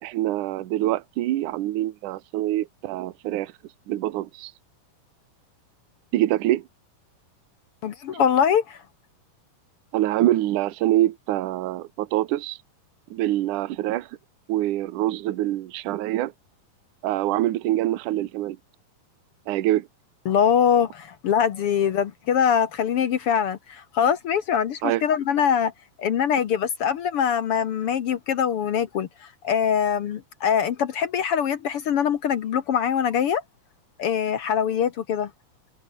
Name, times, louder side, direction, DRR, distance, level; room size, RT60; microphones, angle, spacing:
voice 1, 0.0-3.5 3.9-4.5 6.1-6.7 9.9-12.6 13.1-14.1 14.5-16.3 17.0-18.6 19.5-19.9 24.8-25.0, right 14 dB, 70° right, 2.5 m, -25 dB
voice 2, 7.8-8.8 20.2-25.7 26.0-33.4 34.0-35.3, left 8 dB, 65° left, 1.5 m, -23 dB
omnidirectional pair, 4.0 m